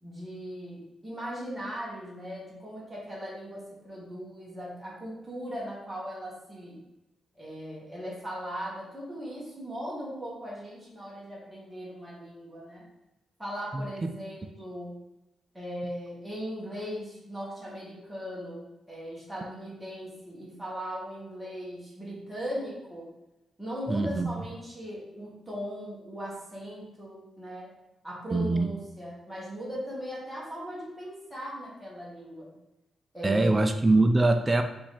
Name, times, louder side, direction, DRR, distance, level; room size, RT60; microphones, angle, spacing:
voice 1, 0.0-6.8 7.3-12.8 13.4-14.9 15.5-23.1 23.6-27.7 28.0-32.5 33.1-33.7, equal, 5° right, -6 dB, 1.6 m, -38 dB
voice 2, 23.9-24.3 28.3-28.7 33.2-34.6, right 2 dB, 20° right, 6 dB, 0.3 m, -23 dB
4.3 x 2.9 x 4.1 m, 0.93 s
cardioid pair, 95°, 0 cm